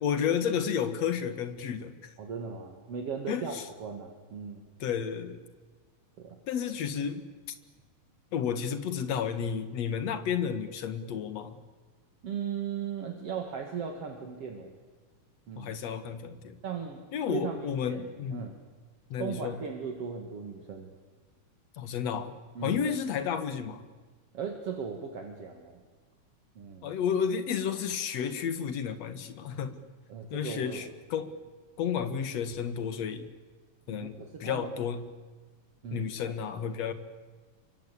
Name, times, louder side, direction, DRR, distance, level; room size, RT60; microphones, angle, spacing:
voice 1, 0.0-1.9 3.3-3.6 4.8-5.4 6.5-7.2 8.3-11.6 15.6-16.6 17.1-18.5 19.1-19.6 21.8-22.3 22.6-23.9 26.8-29.8 30.3-31.3 31.8-33.3 33.9-35.0 35.9-36.9, left 7 dB, 65° left, 11 dB, 2.7 m, -32 dB
voice 2, 2.2-4.7 6.2-6.4 12.2-14.7 15.5-15.8 16.6-17.0 17.3-18.0 18.3-18.6 19.2-20.9 22.5-22.8 24.3-25.8 26.6-26.9 30.1-30.9 33.9-34.7 35.8-36.1, right 6 dB, 55° right, 3 dB, 3.1 m, -37 dB
28.0 x 24.5 x 8.5 m, 1.4 s
omnidirectional pair, 3.3 m